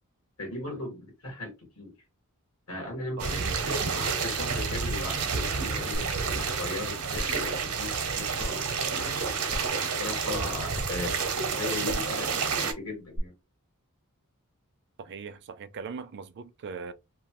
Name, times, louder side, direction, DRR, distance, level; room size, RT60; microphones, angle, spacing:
voice 1, 0.4-1.9 2.7-9.2 10.0-12.3 12.6-13.3, left 2 dB, 75° left, 1.7 m, -38 dB
voice 2, 3.2-3.6 15.0-16.9, right 5 dB, 50° right, 0.4 m, -40 dB
sound 1, 3.2-12.7, right 5 dB, 80° right, 0.7 m, -30 dB
sound 2, 5.9-6.0 6.5-6.6 7.1-7.4 8.4-8.5 9.5-9.8 10.7-10.8 11.9-12.1 13.1-13.2, equal, 20° left, 0.5 m, -34 dB
2.9 x 2.2 x 2.9 m
head